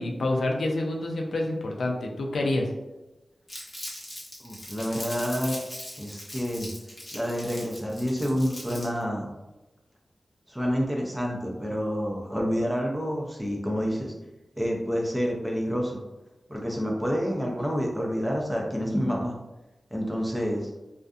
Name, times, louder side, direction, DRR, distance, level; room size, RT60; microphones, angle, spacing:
voice 1, 0.0-2.7, left 2 dB, 80° left, 1 dB, 0.3 m, -27 dB
Crumpling crinkling, 3.5-9.0, left 1 dB, 35° left, 0.8 m, -40 dB
voice 2, 4.4-5.6 6.0-6.7 7.1-9.3 10.5-14.1 14.6-16.0 16.5-19.3 19.9-20.7, equal, 5° right, -2 dB, 0.5 m, -28 dB
2.5 x 2.4 x 2.3 m, 1.0 s
wide cardioid pair, 95°, 0 cm